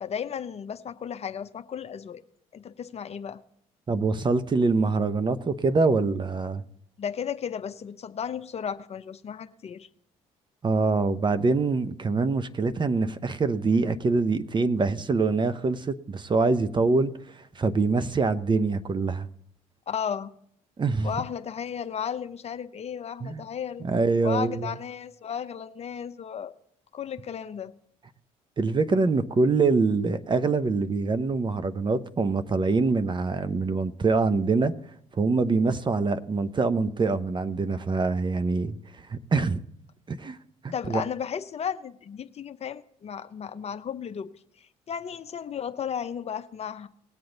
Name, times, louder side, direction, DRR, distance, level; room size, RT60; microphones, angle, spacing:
voice 1, 0.0-2.2 2.5-3.4 7.0-9.9 19.9-20.4 21.0-23.8 24.2-26.5 26.9-27.7 40.7-44.3 44.6-46.9, left 7 dB, 45° left, 0.7 m, -34 dB
voice 2, 3.9-6.6 10.6-19.3 20.8-21.1 23.2-23.5 23.8-24.7 28.6-34.7 35.1-39.6 40.1-40.4 40.6-41.0, right 3 dB, 30° right, 0.7 m, -24 dB
19.5 x 7.8 x 3.9 m
supercardioid pair, 75°, 15 cm